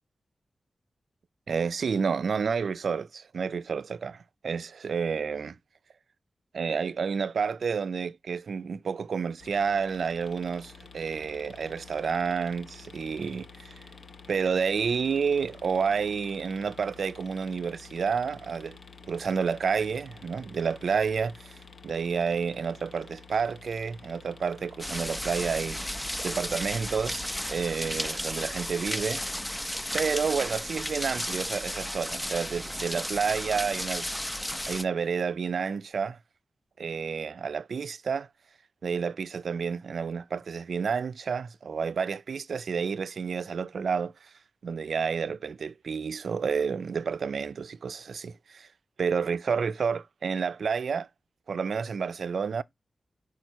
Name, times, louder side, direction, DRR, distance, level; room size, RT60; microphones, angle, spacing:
voice 1, 1.5-5.6 6.5-13.7 14.3-18.8 19.1-29.2 29.9-34.1 34.7-36.2 36.8-38.3 38.8-44.3 44.6-48.7 49.0-51.1 51.5-52.6, right 6 dB, 75° right, 0.4 m, -30 dB
sound 1, 9.4-27.7, left 4 dB, 55° left, 0.7 m, -50 dB
sound 2, 24.8-34.8, left 1 dB, 10° left, 0.4 m, -34 dB
5.5 x 4.7 x 4.5 m
wide cardioid pair, 155°, 0 cm